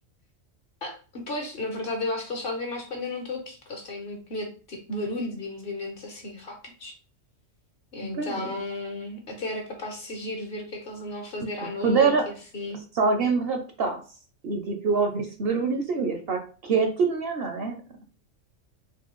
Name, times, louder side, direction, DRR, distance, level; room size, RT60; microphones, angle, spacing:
voice 1, 0.8-7.0 7.9-12.8, left 2 dB, 50° left, 3 dB, 0.9 m, -34 dB
voice 2, 8.0-8.5 11.8-12.3 13.0-14.0 14.4-17.8, right 4 dB, 60° right, 5 dB, 0.7 m, -25 dB
4.6 x 2.2 x 3.0 m, 0.37 s
omnidirectional pair, 1.3 m